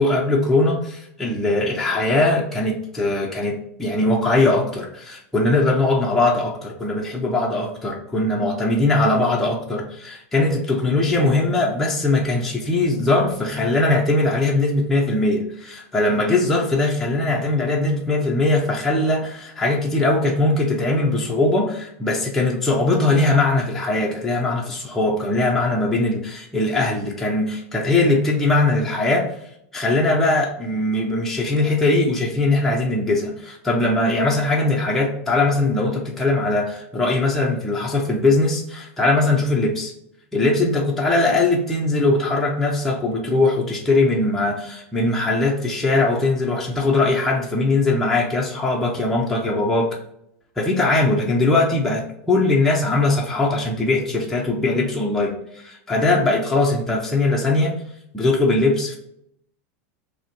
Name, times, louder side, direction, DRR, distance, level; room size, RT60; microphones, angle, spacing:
voice 1, 0.0-29.3 29.7-39.9 40.3-50.0 50.6-57.8 58.1-59.0, left 2 dB, 5° left, -2 dB, 0.5 m, -20 dB
5.5 x 2.1 x 2.9 m, 0.73 s
supercardioid pair, 145°, 8 cm